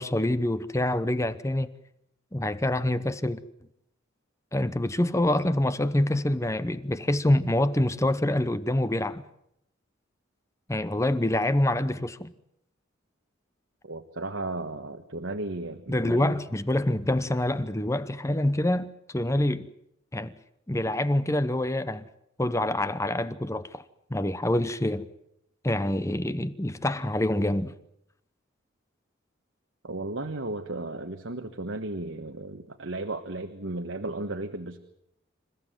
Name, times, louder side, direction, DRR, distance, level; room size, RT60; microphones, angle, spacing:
voice 1, 0.0-1.7 2.3-3.4 4.5-9.2 10.7-12.3 15.9-19.7 20.1-20.3 20.7-22.1 22.4-23.8 24.1-25.1 25.6-27.7, left 1 dB, 15° left, 0.8 m, -26 dB
voice 2, 13.8-16.4 29.8-34.8, right 2 dB, 75° right, 1.5 m, -34 dB
27.5 x 15.0 x 9.2 m
head